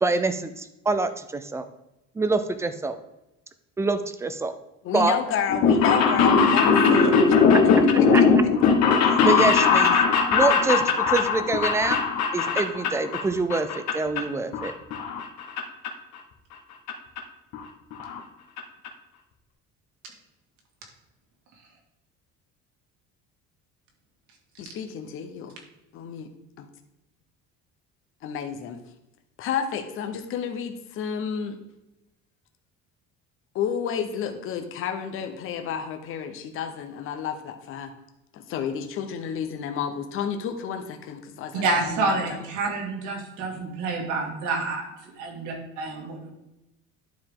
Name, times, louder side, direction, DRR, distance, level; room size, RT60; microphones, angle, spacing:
voice 1, 0.0-1.6 2.2-3.0 3.8-4.5 4.9-5.2 8.1-8.2 9.0-10.0 10.3-12.0 12.3-14.7, right 3 dB, 10° right, 11 dB, 0.3 m, -25 dB
voice 2, 4.8-7.4 24.6-25.5 25.9-26.3 26.6-26.7 28.2-28.8 29.4-31.6 33.5-37.9 38.3-42.5, left 7 dB, 45° left, 6 dB, 0.9 m, -31 dB
sound 1, 5.5-13.2 13.5-14.2 14.5-15.6 15.8-15.9 16.9-17.0 17.2-17.3 17.5-17.6 17.9-18.2 18.6-18.7 18.8-18.9, left 5 dB, 65° left, 1.3 m, -20 dB
voice 3, 41.6-44.8 45.2-46.3, right 3 dB, 85° right, 1 dB, 2.4 m, -28 dB
11.5 x 4.9 x 3.7 m, 0.95 s
cardioid pair, 175°, 29 cm